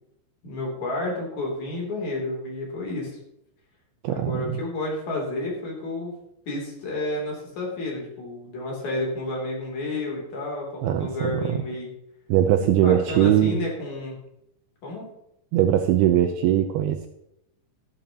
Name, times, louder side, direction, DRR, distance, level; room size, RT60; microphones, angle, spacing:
voice 1, 0.4-3.2 4.1-6.1 6.5-11.9 12.6-14.2 14.8-15.1, left 2 dB, 45° left, -2 dB, 4.1 m, -31 dB
voice 2, 4.0-4.5 10.8-11.6 12.3-13.6 15.5-17.1, right 11 dB, 85° right, 7 dB, 2.3 m, -21 dB
13.5 x 12.5 x 2.9 m, 0.81 s
omnidirectional pair, 5.0 m